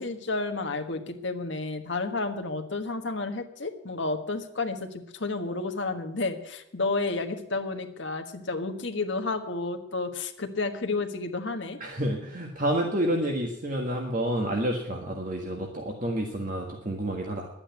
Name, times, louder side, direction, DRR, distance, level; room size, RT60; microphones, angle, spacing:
voice 1, 0.0-11.8, left 3 dB, 60° left, 6 dB, 1.4 m, -31 dB
voice 2, 11.8-17.5, right 1 dB, 40° right, 1 dB, 1.6 m, -29 dB
11.5 x 8.9 x 9.3 m, 0.83 s
head